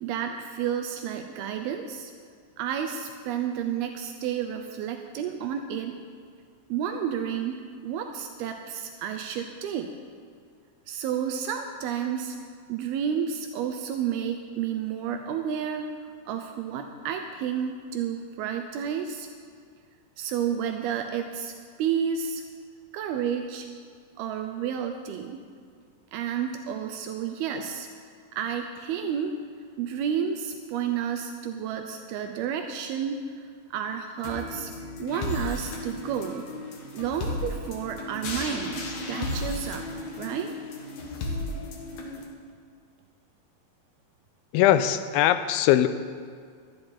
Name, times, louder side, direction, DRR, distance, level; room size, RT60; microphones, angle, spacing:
voice 1, 0.0-2.1 2.6-6.0 6.7-9.9 10.9-12.4 12.7-15.9 16.3-19.3 20.2-22.4 22.9-23.7 24.2-25.4 26.1-27.9 28.4-29.4 29.8-34.7 35.0-36.5 36.9-39.9 40.2-40.5, right 8 dB, 80° right, 5 dB, 2.6 m, -31 dB
sound 1, 34.2-42.2, left 2 dB, 55° left, 2.6 m, -34 dB
voice 2, 44.5-45.9, left 12 dB, 90° left, 11 dB, 2.5 m, -20 dB
17.5 x 12.5 x 4.3 m, 2.1 s
omnidirectional pair, 4.4 m